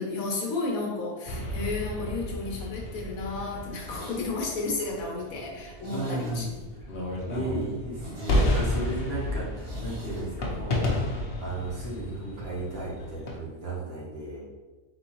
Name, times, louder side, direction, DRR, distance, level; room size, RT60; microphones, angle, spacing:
voice 1, 0.0-6.5, left 3 dB, 65° left, 0 dB, 1.3 m, -32 dB
sound 1, 1.3-13.4, left 1 dB, 50° left, 0.8 m, -32 dB
Zipper (clothing), 3.5-6.8 7.1-7.2 7.5-7.6 7.9-10.3 10.6-10.7, right 1 dB, 70° right, 1.6 m, -46 dB
voice 2, 5.9-6.6 7.3-14.5, right 2 dB, 45° right, -5 dB, 1.3 m, -35 dB
4.1 x 3.9 x 3.0 m, 1.3 s
omnidirectional pair, 1.6 m